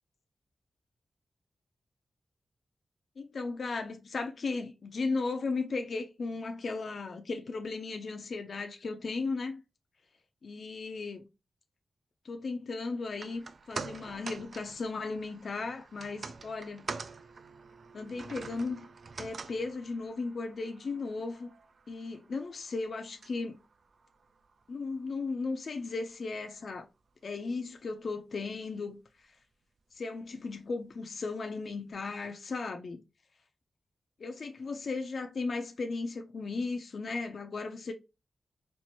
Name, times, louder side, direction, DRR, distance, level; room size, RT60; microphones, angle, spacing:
voice 1, 3.2-9.6 10.4-11.3 12.2-16.9 17.9-18.9 19.2-21.5 21.9-23.6 24.7-26.9 27.2-29.0 29.9-33.0 34.2-37.9, left 3 dB, 55° left, 0.5 m, -36 dB
sound 1, 13.0-25.4 25.7-25.8, right 4 dB, 55° right, 0.4 m, -46 dB
4.4 x 2.6 x 2.8 m
wide cardioid pair, 150°, 0 cm